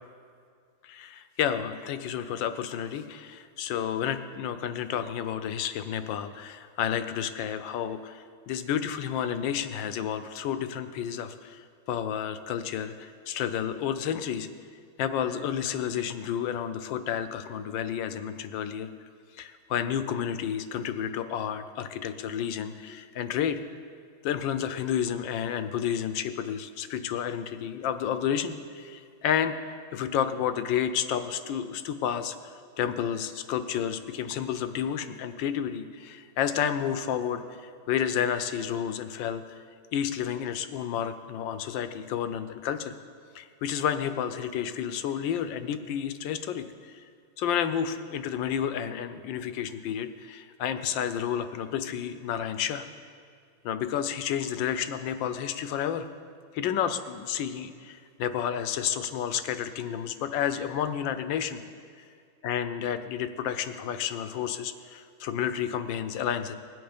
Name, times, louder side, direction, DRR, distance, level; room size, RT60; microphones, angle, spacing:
voice 1, 0.8-14.5 15.0-18.9 19.4-23.6 24.2-32.4 32.8-39.6 39.9-42.9 43.3-47.0 47.4-52.9 53.6-56.1 56.5-61.6 62.0-62.1 62.4-66.5, left 9 dB, 75° left, 10 dB, 1.3 m, -31 dB
20.0 x 7.9 x 5.1 m, 2.2 s
omnidirectional pair, 2.2 m